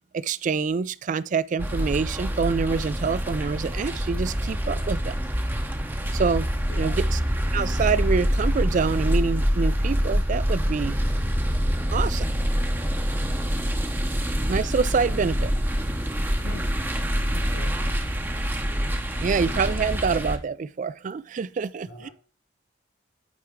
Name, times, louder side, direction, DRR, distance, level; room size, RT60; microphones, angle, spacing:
voice 1, 0.1-5.1 6.1-6.5 6.8-7.2 7.5-11.0 11.9-12.3 14.5-15.5 19.2-22.1, right 5 dB, 40° right, 0.3 m, -26 dB
sound 1, 1.6-20.4, equal, 10° right, 0.7 m, -26 dB
voice 2, 16.4-16.7 17.3-18.0 21.8-22.1, left 2 dB, 80° left, 4.0 m, -40 dB
8.8 x 4.5 x 3.6 m
head